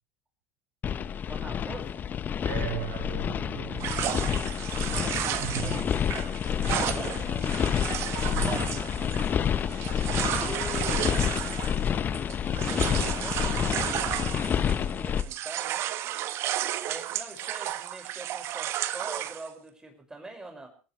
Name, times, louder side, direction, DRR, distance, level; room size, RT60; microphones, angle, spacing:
sound 1, 0.8-15.2, left 8 dB, 30° left, 1.2 m, -29 dB
voice 1, 1.2-2.0 3.8-4.1 4.9-7.6 8.4-9.3 10.4-11.1 12.6-14.2 14.5-15.9 16.9-20.7, right 1 dB, 10° right, 4 dB, 5.9 m, -43 dB
voice 2, 2.4-4.2 5.4-5.8 8.3-8.7, right 10 dB, 65° right, 3 dB, 7.4 m, -37 dB
sound 2, 3.8-14.9 15.2-19.5, right 13 dB, 45° right, 1.3 m, -33 dB
27.5 x 15.0 x 3.3 m, 0.37 s
figure-of-eight pair, 75°, 6 cm